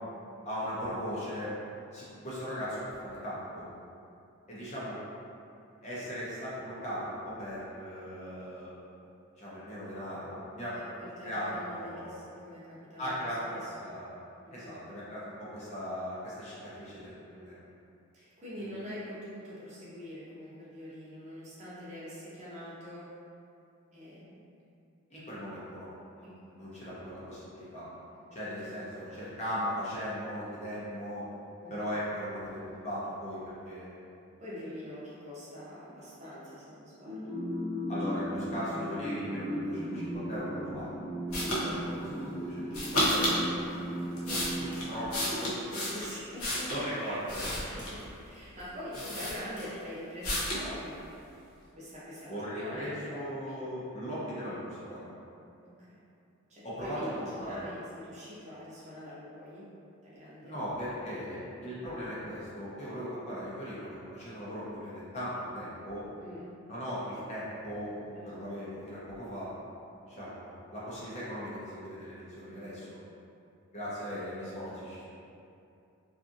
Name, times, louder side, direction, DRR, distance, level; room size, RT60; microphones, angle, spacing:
voice 1, 0.5-1.5 1.9-3.6 4.5-5.0 5.8-8.7 9.4-10.8 11.2-12.2 13.0-14.2 14.5-17.6 18.6-18.7 25.1-25.9 26.2-27.9 28.3-31.2 31.7-34.1 37.9-40.9 41.3-44.4 44.7-45.6 46.0-46.1 46.7-47.5 52.3-55.0 56.6-57.8 60.4-66.1 66.7-69.5 70.0-73.0 73.7-75.1, equal, 30° left, -9 dB, 0.6 m, -38 dB
voice 2, 11.0-13.1 13.5-13.9 14.4-14.8 18.1-23.1 23.9-24.4 26.2-26.5 28.6-28.7 31.6-31.9 34.4-37.4 41.3-41.5 45.7-46.7 47.5-51.0 51.8-53.6 55.6-55.7 56.5-59.6 60.0-60.6 66.2-66.5 68.1-68.5 72.4-72.7, equal, 30° right, -9 dB, 0.6 m, -44 dB
sound 1, 37.0-45.8, equal, 5° left, 0.9 m, -37 dB
sound 2, 41.3-41.6 42.7-43.4 44.0-46.8 47.3-48.1 48.6-48.7 48.9-49.8 50.2-50.7, equal, 90° left, 0.7 m, -32 dB
2.6 x 2.5 x 2.5 m, 2.6 s
head